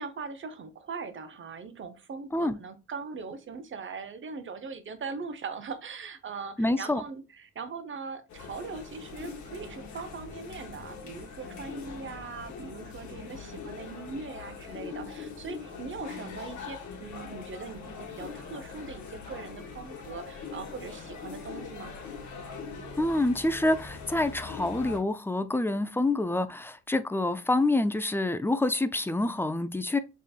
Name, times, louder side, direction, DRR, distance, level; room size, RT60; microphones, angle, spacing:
voice 1, 0.0-21.9, right 4 dB, 40° right, 0.9 m, -40 dB
voice 2, 6.6-7.0 23.0-30.0, left 2 dB, 10° left, 0.4 m, -27 dB
sound 1, 8.3-25.0, left 5 dB, 70° left, 1.6 m, -42 dB
5.4 x 3.2 x 2.4 m
cardioid pair, 90°, 30 cm